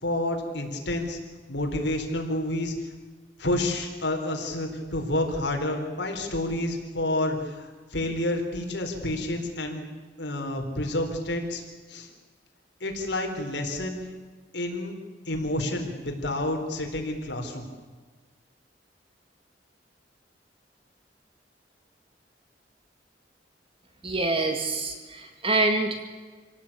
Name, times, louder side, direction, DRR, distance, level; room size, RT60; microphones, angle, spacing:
voice 1, 0.0-1.2 1.5-2.8 3.4-9.8 10.2-11.6 11.9-12.1 12.8-14.0 14.5-14.9 15.3-17.6, left 1 dB, 70° left, 3 dB, 3.9 m, -29 dB
voice 2, 24.0-26.1, right 2 dB, 30° right, 5 dB, 2.1 m, -26 dB
27.0 x 18.0 x 8.6 m, 1.4 s
head